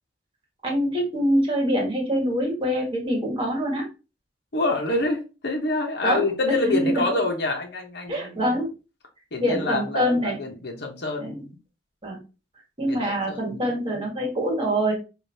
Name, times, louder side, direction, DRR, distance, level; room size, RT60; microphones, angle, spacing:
voice 1, 0.6-3.9 6.0-7.2 8.1-8.7 9.4-10.4 11.2-11.4 12.0-12.2 12.8-14.9, equal, 30° right, 1.5 m, -25 dB
voice 2, 4.5-8.4 9.3-11.6 12.9-13.7, left 2 dB, 60° left, 1.0 m, -27 dB
4.9 x 2.6 x 2.7 m
head